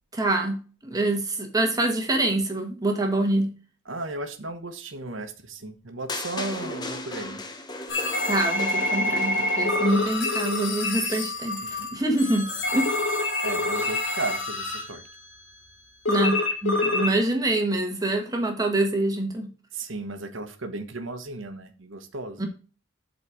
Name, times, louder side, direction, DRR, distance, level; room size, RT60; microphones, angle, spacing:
voice 1, 0.1-3.5 8.3-12.9 16.1-19.5 22.4-22.5, right 1 dB, 20° right, 3 dB, 1.2 m, -25 dB
voice 2, 3.9-7.4 11.1-11.2 11.6-11.9 13.4-15.0 19.7-22.5, right 2 dB, 85° right, 7 dB, 1.2 m, -35 dB
sound 1, 6.1-10.3, left 2 dB, 20° left, 0.8 m, -35 dB
sound 2, 7.9-15.1 16.1-17.2, left 2 dB, 80° left, 2.2 m, -27 dB
8.0 x 4.1 x 4.8 m, 0.37 s
head